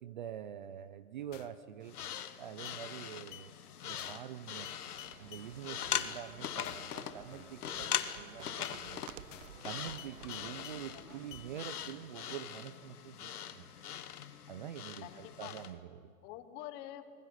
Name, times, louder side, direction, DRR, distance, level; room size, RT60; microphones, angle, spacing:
voice 1, 0.0-2.0 2.4-3.5 3.8-4.8 5.2-9.0 9.6-13.7 14.5-16.1, right 10 dB, 35° right, 14 dB, 0.5 m, -46 dB
sound 1, 1.3-1.6 2.0-2.3 2.6-2.8 3.3-3.5 4.0-4.3 4.6-5.5 6.0-6.1 6.6-6.9 7.3-7.6 8.0-8.1 8.6-8.8 9.3-9.6 10.0-10.8 11.3-11.5, left 12 dB, 55° left, 1.0 m, -52 dB
sound 2, 1.9-15.7, left 9 dB, 90° left, 1.5 m, -41 dB
sound 3, 4.6-11.8, right 10 dB, 60° right, 0.9 m, -55 dB
voice 2, 10.9-11.2 15.0-15.6 16.2-17.1, left 13 dB, 25° left, 11 dB, 1.0 m, -47 dB
21.0 x 16.5 x 9.8 m, 2.3 s
hypercardioid pair, 160°, 44 cm